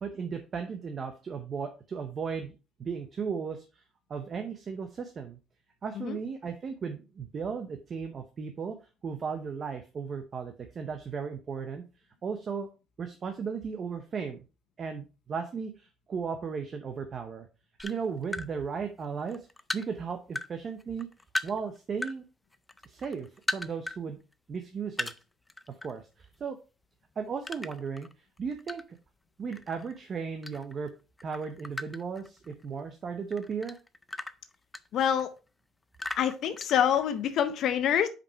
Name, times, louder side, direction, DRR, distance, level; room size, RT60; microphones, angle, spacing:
voice 1, 0.0-2.5 2.8-3.8 4.1-5.4 5.8-8.8 9.0-11.8 12.2-12.7 13.0-14.4 14.8-17.5 17.8-19.5 19.7-21.1 21.4-22.2 22.8-24.2 24.5-25.1 25.7-26.6 27.2-28.1 28.4-28.8 29.4-30.9 31.2-33.8, right 6 dB, 30° right, 0.8 m, -35 dB
sound 1, 17.8-18.5 19.0-20.5 20.8-22.2 22.5-24.0 24.3-24.4 24.9-25.9 26.2-26.5 27.4-29.1 29.5-30.9 31.2-32.8 33.3-35.4 35.9-37.3, left 2 dB, 10° left, 0.4 m, -37 dB
voice 2, 34.9-35.3 36.2-38.1, left 9 dB, 50° left, 0.6 m, -26 dB
5.9 x 5.2 x 4.6 m
cardioid pair, 165°, 0 cm